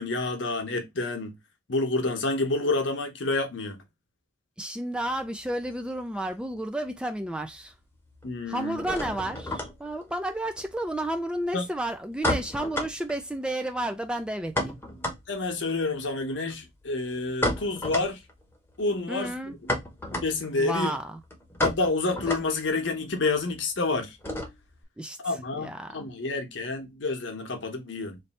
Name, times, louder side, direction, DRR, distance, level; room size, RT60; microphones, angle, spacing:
voice 1, 0.0-1.4 1.7-3.8 8.2-8.8 11.5-11.7 15.3-18.2 18.8-19.7 20.1-20.9 21.6-24.2 25.2-28.2, left 3 dB, 65° left, 0.9 m, -29 dB
voice 2, 4.6-7.7 8.5-14.8 19.1-19.5 20.6-21.2 25.0-25.2 25.6-26.1, right 1 dB, 5° right, 0.3 m, -31 dB
sound 1, 5.0-6.6 6.8-7.6 7.8-24.8, left 1 dB, 10° left, 0.9 m, -34 dB
3.2 x 2.6 x 4.1 m
head